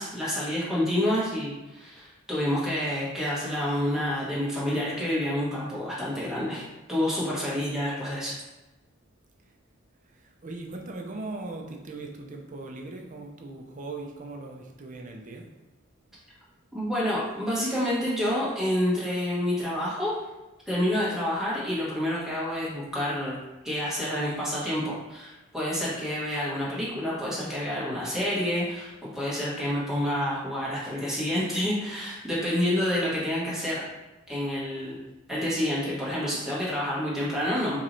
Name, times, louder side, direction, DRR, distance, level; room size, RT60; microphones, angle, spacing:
voice 1, 0.0-8.3 16.7-20.1 20.7-23.3 23.6-33.8 34.3-35.0 35.3-37.8, left 1 dB, ahead, -8 dB, 1.2 m, -28 dB
voice 2, 10.0-15.5, right 2 dB, 40° right, 2 dB, 0.5 m, -39 dB
4.6 x 3.0 x 2.6 m, 1.1 s
head